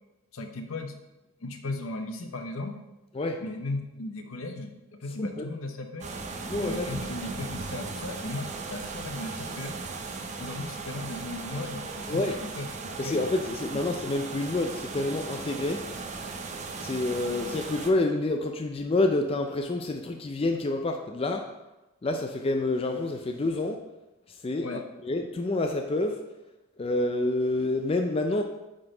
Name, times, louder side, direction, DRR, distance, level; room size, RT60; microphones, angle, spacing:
voice 1, 0.3-1.0 1.4-2.8 3.4-6.1 6.6-9.7 10.4-13.2 24.6-24.8, left 2 dB, 70° left, 5 dB, 0.8 m, -36 dB
sound 1, 6.0-17.9, right 4 dB, 35° right, 0.6 m, -37 dB
voice 2, 6.5-6.9 12.1-12.4 13.0-15.9 16.8-21.5 22.0-23.8 24.4-26.2 26.8-28.4, left 2 dB, 25° left, 4 dB, 0.3 m, -28 dB
9.0 x 3.8 x 3.9 m, 1.0 s
head